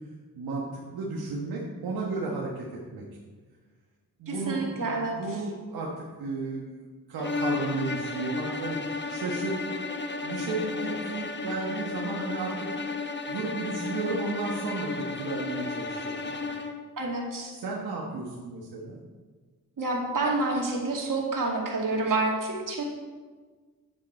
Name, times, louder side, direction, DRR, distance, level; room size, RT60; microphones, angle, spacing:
voice 1, 0.4-2.6 2.9-3.0 4.2-9.6 10.2-12.7 13.3-16.4 17.5-19.0, right 3 dB, 85° right, -3 dB, 1.3 m, -33 dB
voice 2, 4.3-5.2 17.0-17.5 19.8-22.8, right 3 dB, 60° right, -1 dB, 2.4 m, -28 dB
sound 1, 7.2-16.9, left 4 dB, 30° left, 1.0 m, -33 dB
8.7 x 7.9 x 4.3 m, 1.4 s
supercardioid pair, 50°, 37 cm